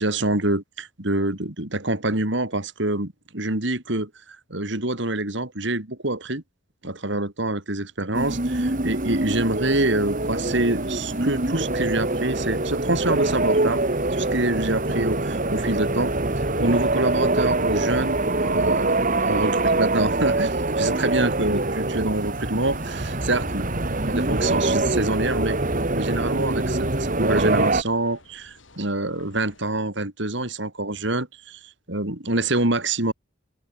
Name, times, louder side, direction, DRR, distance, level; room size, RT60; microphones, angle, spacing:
voice 1, 0.0-6.4 6.8-13.8 14.1-16.1 16.6-23.7 24.0-25.6 25.9-31.6 31.9-33.1, right 2 dB, 60° right, 3.3 m, -26 dB
sound 1, 8.1-27.8, right 2 dB, 40° right, 1.9 m, -24 dB
sound 2, 10.2-29.8, left 2 dB, 65° left, 4.3 m, -48 dB
head